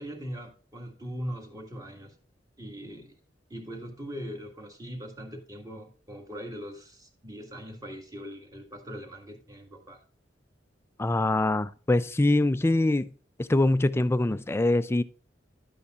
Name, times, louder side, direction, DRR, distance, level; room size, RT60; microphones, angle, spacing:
voice 1, 0.0-2.1 2.6-3.1 3.5-10.0, equal, 20° right, 1.7 m, -40 dB
voice 2, 11.0-13.1 13.4-15.0, left 2 dB, 15° left, 0.4 m, -24 dB
11.5 x 8.4 x 2.4 m
head